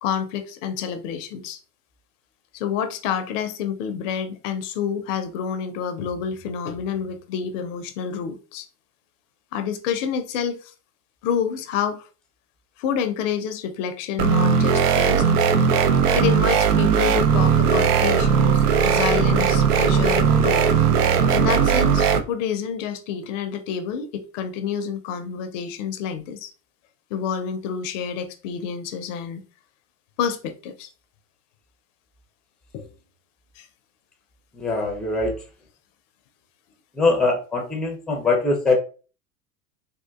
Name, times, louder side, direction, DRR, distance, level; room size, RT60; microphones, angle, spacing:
voice 1, 0.0-1.6 2.5-8.7 9.5-10.7 11.2-12.1 12.8-15.3 16.1-20.6 21.3-26.5 27.1-29.4 30.2-30.9 32.7-32.9 33.6-33.7, left 7 dB, 55° left, 0.6 m, -28 dB
sound 1, 14.2-22.2, right 6 dB, 70° right, 0.6 m, -18 dB
voice 2, 34.5-35.3 37.0-38.8, left 3 dB, ahead, 0.5 m, -22 dB
3.6 x 2.4 x 2.3 m
figure-of-eight pair, 85°, 47 cm